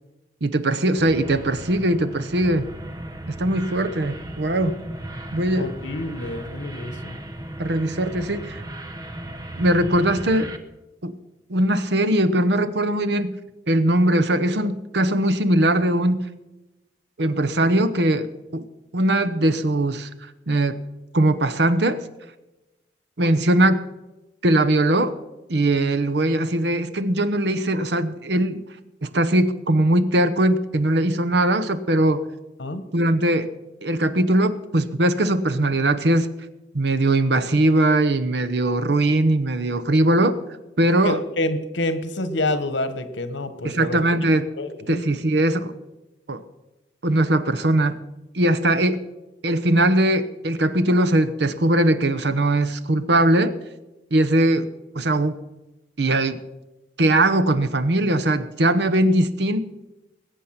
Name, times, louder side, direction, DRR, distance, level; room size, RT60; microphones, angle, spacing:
voice 1, 0.4-2.7 3.3-4.8 5.3-5.7 7.6-8.6 9.6-10.5 11.0-11.2 11.5-13.3 13.7-16.2 17.2-18.6 18.9-20.1 20.5-20.8 21.1-22.0 23.2-23.8 24.4-25.1 25.5-28.6 29.0-32.2 32.9-33.5 33.8-36.3 36.7-40.4 40.8-41.2 43.6-44.5 44.9-45.7 46.3-46.4 47.0-48.0 48.3-49.0 49.4-53.5 54.1-55.4 56.0-56.4 57.0-59.6, right 1 dB, 65° right, 10 dB, 0.9 m, -20 dB
sound 1, 1.0-10.6, right 1 dB, 20° right, 0.9 m, -36 dB
voice 2, 5.5-7.2 32.6-32.8 41.0-44.0 44.6-45.0, left 1 dB, 90° left, 12 dB, 1.2 m, -27 dB
20.5 x 8.3 x 5.9 m, 1.0 s
head